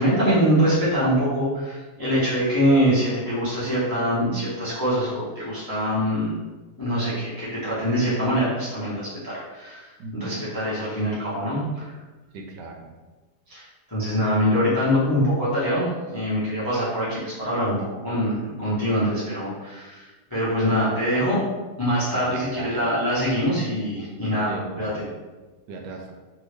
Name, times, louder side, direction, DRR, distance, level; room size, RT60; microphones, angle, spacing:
voice 1, 0.0-6.3 6.8-11.9 13.5-21.4 21.8-25.0, equal, 25° left, -9 dB, 0.5 m, -24 dB
voice 2, 10.0-10.5 12.3-13.0 22.1-22.9 24.5-25.0 25.7-26.1, right 3 dB, 85° right, 2 dB, 1.2 m, -37 dB
2.8 x 2.7 x 3.2 m, 1.2 s
omnidirectional pair, 1.8 m